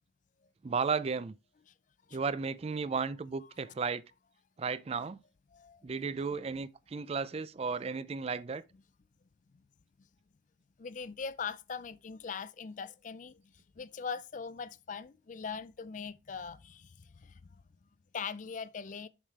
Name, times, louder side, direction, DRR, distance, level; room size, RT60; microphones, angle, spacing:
voice 1, 0.6-1.3 2.1-4.0 4.6-5.2 5.8-8.6, right 5 dB, 35° right, 0.4 m, -34 dB
voice 2, 5.5-5.8 6.3-6.4 10.8-13.4 13.8-17.4 18.1-19.1, left 5 dB, 45° left, 0.4 m, -41 dB
7.3 x 5.0 x 4.5 m
head